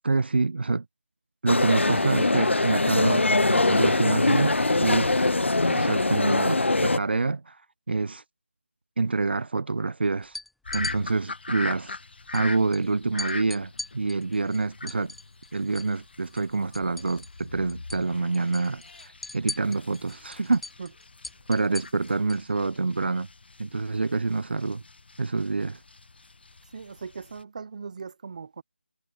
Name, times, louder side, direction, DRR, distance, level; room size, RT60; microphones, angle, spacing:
voice 1, 0.0-0.8 1.4-5.1 5.7-7.6 7.9-8.2 9.0-10.4 10.7-12.0 12.3-15.1 15.5-20.6 21.5-23.3 23.6-24.8 25.2-25.8, right 3 dB, 60° right, 0.8 m, -27 dB
sound 1, 1.5-7.0, left 2 dB, 85° left, 0.6 m, -22 dB
sound 2, 10.2-11.0 12.3-12.4 12.7-12.8 13.2-16.0 16.2-17.4 17.7-18.0 18.3-22.5, left 2 dB, ahead, 0.5 m, -39 dB
sound 3, 10.6-27.4, left 3 dB, 60° left, 1.1 m, -42 dB
voice 2, 26.7-28.6, right 5 dB, 40° right, 1.0 m, -39 dB
figure-of-eight pair, 160°, 6 cm